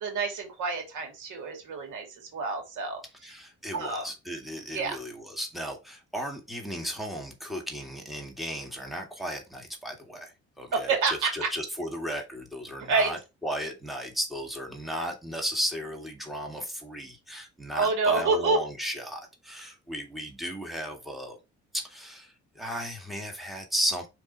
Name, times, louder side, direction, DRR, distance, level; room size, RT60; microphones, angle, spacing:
voice 1, 0.0-2.0 2.3-3.0 3.7-4.1 4.7-5.0 10.7-11.3 12.9-13.1 17.7-18.6, right 4 dB, 80° right, 2.5 m, -27 dB
voice 2, 3.2-21.4 21.7-24.1, equal, ahead, 2.1 m, -35 dB
5.1 x 4.6 x 4.2 m
cardioid pair, 90°, 30 cm